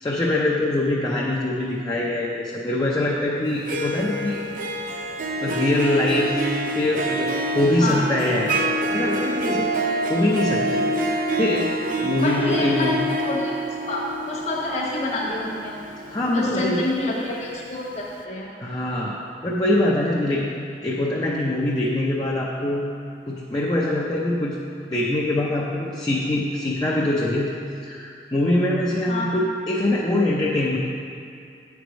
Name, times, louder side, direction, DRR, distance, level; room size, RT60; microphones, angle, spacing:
voice 1, 0.0-4.4 5.4-8.6 8.9-9.7 10.1-11.7 12.0-13.0 16.1-16.9 18.6-19.2 19.4-20.4 20.8-22.9 23.3-24.6 24.9-27.5 27.8-30.8, left 1 dB, 20° left, -4 dB, 0.5 m, -23 dB
Harp, 3.5-17.4, right 1 dB, 50° right, 0.5 m, -27 dB
voice 2, 12.1-13.0 13.2-15.8 16.3-18.5 29.1-29.4, left 1 dB, 40° left, -4 dB, 1.1 m, -28 dB
8.0 x 4.7 x 5.1 m, 2.4 s
head